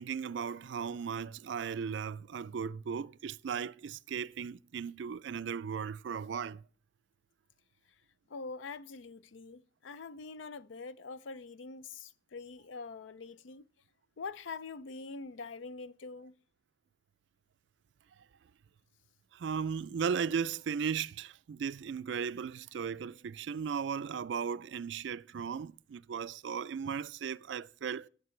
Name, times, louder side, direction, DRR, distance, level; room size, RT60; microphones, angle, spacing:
voice 1, 0.0-6.6 19.3-28.1, right 6 dB, 75° right, 0.4 m, -36 dB
voice 2, 8.3-13.6 14.2-16.3, left 4 dB, 85° left, 0.5 m, -44 dB
17.5 x 6.6 x 3.1 m
head